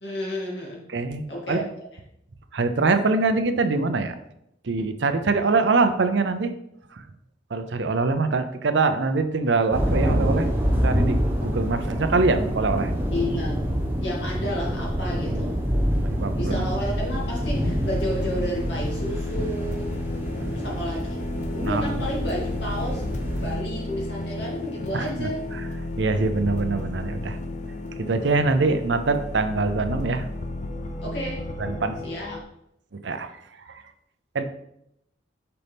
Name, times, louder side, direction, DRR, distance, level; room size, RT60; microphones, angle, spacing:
voice 1, 0.0-0.9 1.3-1.6 13.1-13.6 14.0-15.6 16.4-19.9 20.5-21.2 21.5-25.4 31.0-31.4 32.0-32.4, equal, 70° left, -3 dB, 2.3 m, -31 dB
voice 2, 0.9-1.7 2.5-4.2 4.6-6.5 6.9-7.0 7.5-10.5 10.8-12.9 16.0-16.6 21.6-22.1 24.9-25.6 26.0-27.4 28.0-30.3 31.6-32.0 33.0-33.3 33.7-33.8 34.3-34.5, right 3 dB, 70° right, 9 dB, 0.6 m, -24 dB
sound 1, 9.7-23.6, equal, 10° right, 0.9 m, -27 dB
sound 2, 17.0-32.4, left 2 dB, 40° left, 0.6 m, -32 dB
6.7 x 5.4 x 3.5 m, 0.79 s
head